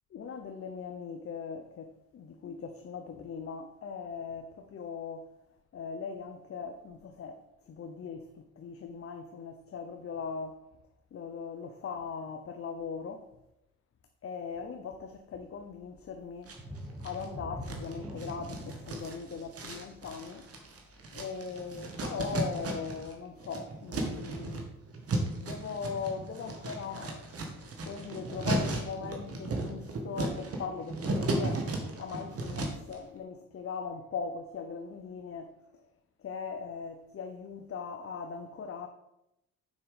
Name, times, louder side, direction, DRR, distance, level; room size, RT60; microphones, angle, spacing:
voice 1, 0.1-5.3 5.7-10.6 11.1-13.3 14.2-16.5 17.0-20.5 21.1-24.7 25.4-31.7 32.0-35.5 36.2-38.9, left 5 dB, 50° left, 0.8 m, -40 dB
sound 1, 16.5-22.0 22.4-22.6 23.1-23.2, equal, 5° right, 2.0 m, -44 dB
sound 2, 16.5-17.3 17.6-23.1 23.4-32.9, right 2 dB, 50° right, 2.0 m, -35 dB
7.3 x 6.0 x 5.1 m
cardioid pair, 90°, 30 cm